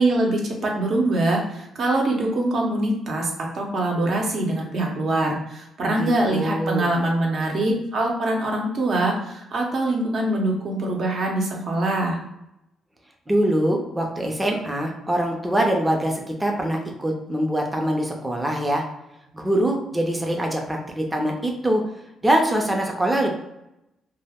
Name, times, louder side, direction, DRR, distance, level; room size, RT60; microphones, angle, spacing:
voice 1, 0.0-12.2, right 2 dB, 55° right, 0 dB, 0.7 m, -23 dB
voice 2, 5.8-6.9 13.3-18.8 19.3-21.8 22.2-23.3, right 1 dB, 10° right, 1 dB, 0.5 m, -23 dB
2.3 x 2.0 x 3.4 m, 0.86 s
cardioid pair, 90°, 0 cm